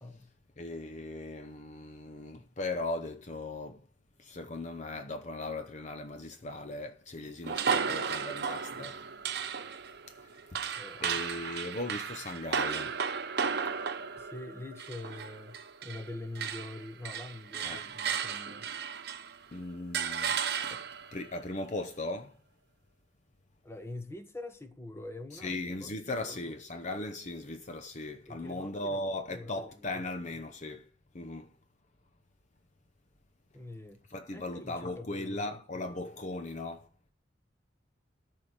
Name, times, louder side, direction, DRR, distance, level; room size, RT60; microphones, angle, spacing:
voice 1, 0.6-3.9 4.2-9.1 10.1-13.0 17.6-17.9 19.5-22.4 25.3-31.6 34.1-36.9, left 2 dB, 40° left, 0.8 m, -38 dB
sound 1, 7.4-16.1 16.4-19.4 19.9-21.1, right 6 dB, 60° right, 1.0 m, -34 dB
voice 2, 10.7-11.1 14.2-18.7 23.6-25.9 26.2-26.5 28.3-29.0 29.3-30.0 33.5-34.0 34.3-36.0, left 2 dB, 15° left, 1.2 m, -45 dB
13.0 x 4.8 x 8.8 m
head